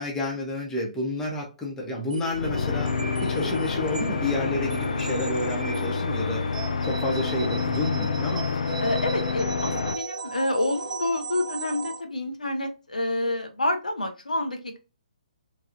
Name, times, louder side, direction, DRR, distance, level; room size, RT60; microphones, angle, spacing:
voice 1, 0.0-2.9 3.2-6.4 6.8-8.7, left 1 dB, 10° left, 0.9 m, -30 dB
sound 1, 2.1-12.0, right 4 dB, 75° right, 0.5 m, -36 dB
sound 2, 2.3-9.9, left 5 dB, 65° left, 0.4 m, -28 dB
voice 2, 8.8-14.8, left 1 dB, 85° left, 0.8 m, -28 dB
3.3 x 2.3 x 2.6 m
figure-of-eight pair, 135°, 4 cm